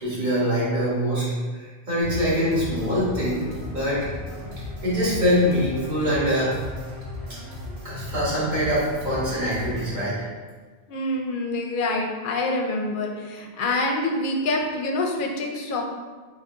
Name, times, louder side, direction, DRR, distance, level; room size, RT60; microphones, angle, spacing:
voice 1, 0.0-1.2 1.5-4.1 4.8-6.6 7.8-10.2, equal, 50° right, -10 dB, 1.5 m, -24 dB
sound 1, 2.0-10.0, left 2 dB, 85° right, 1.2 m, -36 dB
voice 2, 10.9-15.8, left 2 dB, 60° left, 1 dB, 0.6 m, -26 dB
3.7 x 2.2 x 3.6 m, 1.4 s
omnidirectional pair, 1.1 m